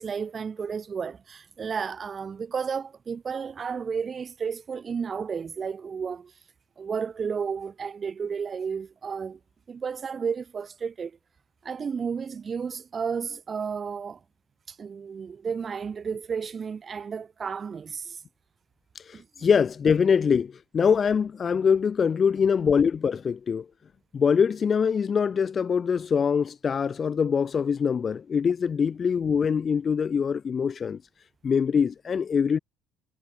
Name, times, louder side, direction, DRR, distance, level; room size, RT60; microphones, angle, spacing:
voice 1, 0.0-6.3 6.8-9.4 9.7-11.2 11.6-14.2 14.7-18.2 19.1-19.5, right 6 dB, 30° right, 3.1 m, -32 dB
voice 2, 19.1-23.7 24.1-31.0 31.4-32.6, left 6 dB, 30° left, 0.6 m, -23 dB
figure-of-eight pair, 60°, 0 cm